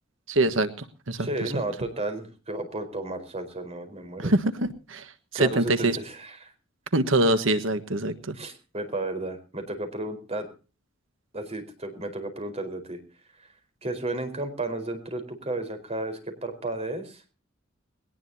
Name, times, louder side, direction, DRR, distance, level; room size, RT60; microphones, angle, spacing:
voice 1, 0.3-1.5 4.2-5.1 5.3-6.0 6.9-8.3, right 2 dB, 70° right, 9 dB, 1.5 m, -24 dB
voice 2, 1.2-4.3 5.3-6.5 8.3-10.5 11.3-13.0 13.8-17.2, right 2 dB, 30° right, 7 dB, 4.5 m, -33 dB
21.0 x 19.0 x 2.8 m, 0.35 s
head